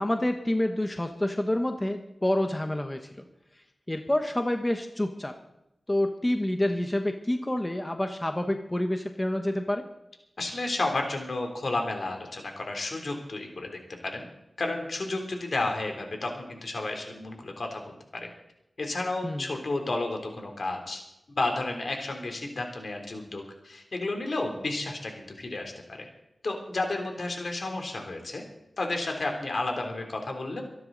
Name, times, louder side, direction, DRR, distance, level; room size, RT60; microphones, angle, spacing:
voice 1, 0.0-3.3 3.9-5.3 5.9-9.9 19.2-19.5, left 1 dB, 20° left, 5 dB, 1.1 m, -28 dB
voice 2, 10.4-14.3 14.6-18.3 18.8-21.0 21.4-26.1 26.4-28.4 28.8-30.6, left 2 dB, 70° left, 3 dB, 3.1 m, -32 dB
24.0 x 10.5 x 4.0 m, 0.87 s
wide cardioid pair, 80°, 0 cm